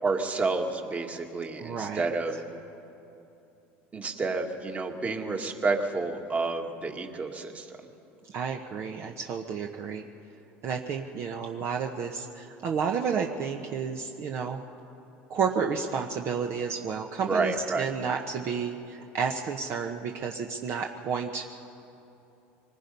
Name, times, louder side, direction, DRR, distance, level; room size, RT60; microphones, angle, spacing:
voice 1, 0.0-2.4 3.9-7.8 17.3-17.9, right 3 dB, 25° right, 4 dB, 1.8 m, -30 dB
voice 2, 1.6-2.0 8.2-10.0 10.6-14.6 15.3-21.4, right 6 dB, 50° right, 2 dB, 1.1 m, -31 dB
25.0 x 19.0 x 5.4 m, 2.8 s
supercardioid pair, 100°, 6 cm